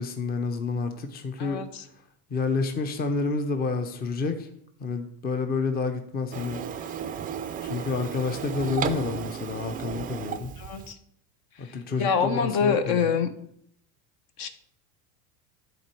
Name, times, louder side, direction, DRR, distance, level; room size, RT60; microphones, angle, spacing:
voice 1, 0.0-1.6 2.3-4.5 4.8-6.6 7.6-10.5 11.6-13.1, left 4 dB, 20° left, 0.7 m, -29 dB
voice 2, 1.4-1.8 10.6-11.0 11.6-13.3 14.4-14.5, left 6 dB, 55° left, 1.0 m, -26 dB
Printer, 6.3-10.9, right 8 dB, 20° right, 0.3 m, -34 dB
10.5 x 4.2 x 4.5 m
supercardioid pair, 120°, 42 cm